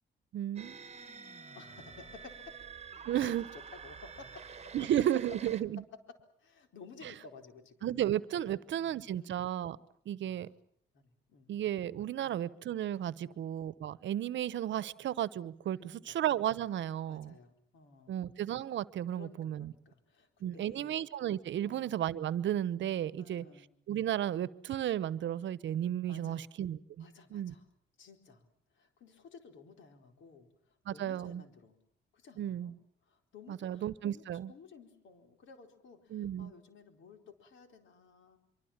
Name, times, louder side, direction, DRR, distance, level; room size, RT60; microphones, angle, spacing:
voice 1, 0.3-0.8 3.0-3.4 4.7-5.8 7.8-9.8 10.1-10.5 11.5-17.3 18.1-19.7 20.4-23.4 23.9-27.1 27.3-27.5 30.9-31.4 32.4-32.7 33.5-34.5 36.1-36.5, right 11 dB, 70° right, 18 dB, 1.0 m, -33 dB
sound 1, 0.6-5.6, right 6 dB, 35° right, 1.3 m, -48 dB
voice 2, 1.5-2.6 2.9-4.5 4.8-4.9 6.4-8.0 8.4-9.3 10.2-10.6 10.9-11.5 12.2-12.4 13.2-13.5 15.7-16.2 17.1-18.1 19.1-21.0 21.7-21.9 23.2-23.7 26.1-26.5 27.0-27.6 28.0-28.5 28.7-31.8 32.1-32.7 33.0-34.2 34.5-38.4, left 4 dB, 75° left, 6 dB, 4.4 m, -55 dB
25.0 x 24.5 x 7.4 m, 0.66 s
cardioid pair, 90°, 20 cm